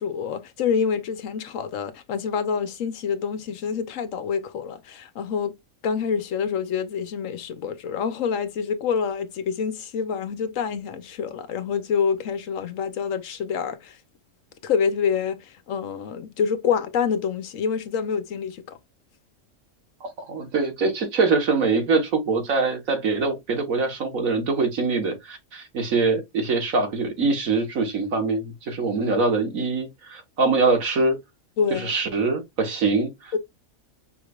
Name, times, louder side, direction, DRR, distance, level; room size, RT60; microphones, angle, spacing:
voice 1, 0.0-5.5 5.8-14.0 14.6-18.8 31.6-31.9 33.3-33.4, left 6 dB, 70° left, 1.2 m, -27 dB
voice 2, 20.0-31.2 31.7-33.4, right 4 dB, 75° right, 1.8 m, -23 dB
5.7 x 3.2 x 2.4 m
omnidirectional pair, 1.4 m